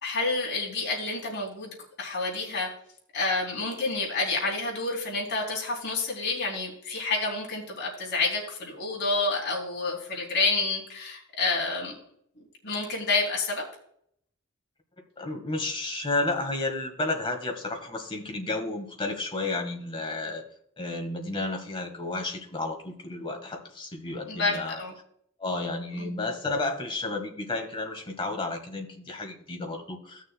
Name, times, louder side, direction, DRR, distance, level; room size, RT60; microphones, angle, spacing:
voice 1, 0.0-2.7 3.1-11.9 12.4-13.7 24.3-24.9 26.0-26.1, left 3 dB, 55° left, -2 dB, 3.1 m, -29 dB
voice 2, 15.2-20.5 20.8-24.8 25.4-30.3, left 2 dB, 25° left, 4 dB, 1.4 m, -32 dB
16.0 x 6.4 x 2.2 m, 0.68 s
head